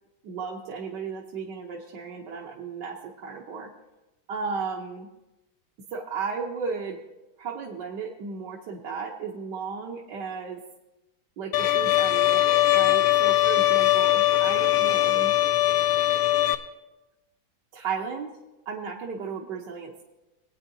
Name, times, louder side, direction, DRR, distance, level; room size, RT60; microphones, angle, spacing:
voice 1, 0.2-3.7 4.3-5.1 5.9-7.0 7.4-10.6 11.4-15.3 17.7-18.3 18.7-20.0, right 5 dB, 65° right, -2 dB, 1.5 m, -34 dB
Bowed string instrument, 11.5-16.5, left 14 dB, 75° left, 0.9 m, -21 dB
20.0 x 8.9 x 2.7 m, 1.0 s
omnidirectional pair, 2.1 m